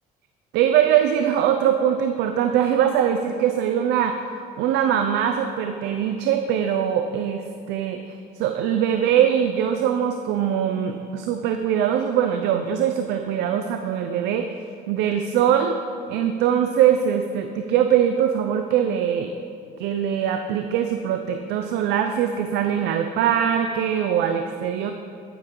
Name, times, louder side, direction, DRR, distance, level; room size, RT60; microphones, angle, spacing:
voice 1, 0.5-14.5 14.9-15.8 16.1-19.3 19.8-24.9, right 9 dB, 85° right, 6 dB, 0.6 m, -22 dB
11.5 x 9.6 x 3.8 m, 2.4 s
cardioid pair, 110°, 17 cm